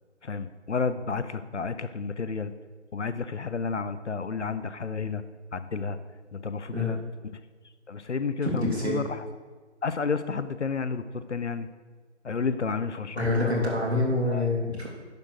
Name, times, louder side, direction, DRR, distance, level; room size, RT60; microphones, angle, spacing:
voice 1, 0.2-2.5 2.9-5.2 5.5-6.0 6.3-7.0 7.9-9.2 9.8-11.7 12.2-13.7 14.3-14.5, left 5 dB, 65° left, 12 dB, 0.6 m, -31 dB
voice 2, 8.4-9.1 13.2-14.9, left 2 dB, 60° right, -2 dB, 2.7 m, -26 dB
10.5 x 3.9 x 6.3 m, 1.4 s
figure-of-eight pair, 175°, 37 cm